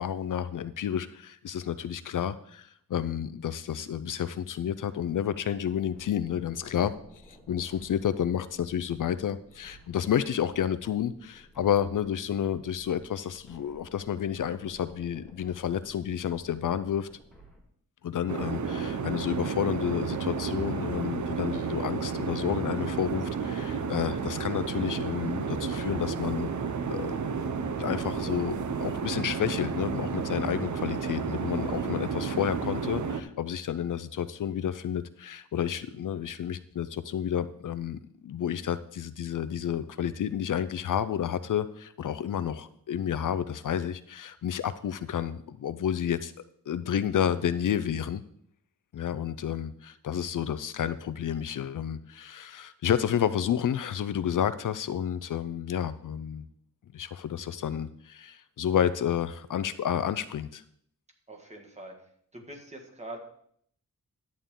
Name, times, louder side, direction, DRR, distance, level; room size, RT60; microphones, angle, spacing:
voice 1, 0.0-6.9 7.3-17.1 18.0-26.5 26.9-27.2 27.8-46.3 46.7-48.2 48.9-56.5 56.9-60.6, left 9 dB, 65° left, 13 dB, 0.5 m, -30 dB
sound 1, 5.9-17.6, equal, ahead, 1.8 m, -56 dB
sound 2, 18.3-33.2, right 5 dB, 60° right, 0.7 m, -32 dB
voice 2, 61.3-61.9 62.3-63.2, right 1 dB, 20° right, 2 dB, 1.5 m, -43 dB
11.0 x 8.5 x 3.7 m, 0.66 s
wide cardioid pair, 180°, 34 cm